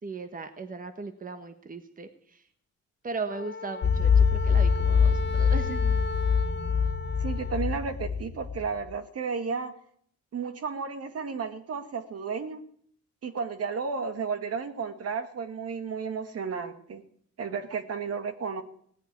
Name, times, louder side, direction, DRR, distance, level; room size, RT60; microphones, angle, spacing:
voice 1, 0.0-2.5 3.0-5.8, right 4 dB, 30° right, 8 dB, 1.4 m, -38 dB
Wind instrument woodwind instrument, 3.3-7.7, left 4 dB, 35° left, 0.9 m, -37 dB
sound 1, 3.8-8.7, left 6 dB, 70° left, 1.8 m, -24 dB
voice 2, 7.2-9.8 10.3-12.6 13.2-17.0 17.4-18.6, right 5 dB, 50° right, 9 dB, 1.8 m, -33 dB
17.5 x 7.7 x 9.5 m, 0.65 s
cardioid pair, 90°, 30 cm